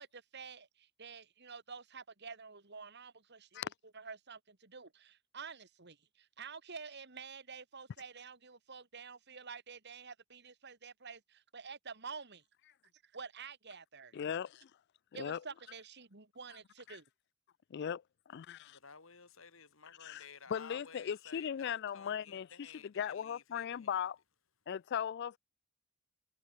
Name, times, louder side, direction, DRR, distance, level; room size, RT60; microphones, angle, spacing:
voice 1, 0.0-12.4 13.0-14.2 15.1-17.0, right 5 dB, 55° right, 2.7 m, -49 dB
voice 2, 14.1-14.7 15.2-15.4 16.9-17.0 17.7-18.0 18.3-18.8 20.0-20.2 20.5-24.2 24.7-25.4, left 8 dB, 55° left, 0.3 m, -38 dB
voice 3, 18.7-24.0, left 5 dB, 70° left, 2.7 m, -55 dB
head